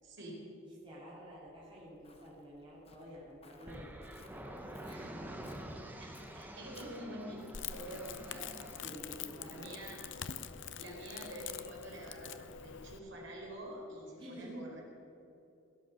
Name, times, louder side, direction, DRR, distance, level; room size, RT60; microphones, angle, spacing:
voice 1, 0.0-0.5 6.0-6.1 6.3-7.4 7.7-8.5 8.9-10.0 10.8-14.8, right 1 dB, 60° right, -3 dB, 4.6 m, -47 dB
voice 2, 0.8-5.6 8.8-9.7 14.2-14.7, equal, 25° right, -7 dB, 3.3 m, -50 dB
Walk footsteps, 1.5-7.7, left 3 dB, 30° left, 1.1 m, -62 dB
sound 1, 3.7-13.5, right 1 dB, 10° right, 1.1 m, -50 dB
Crackle, 7.5-13.0, left 8 dB, 60° left, 0.6 m, -45 dB
18.0 x 11.0 x 6.3 m, 2.8 s
head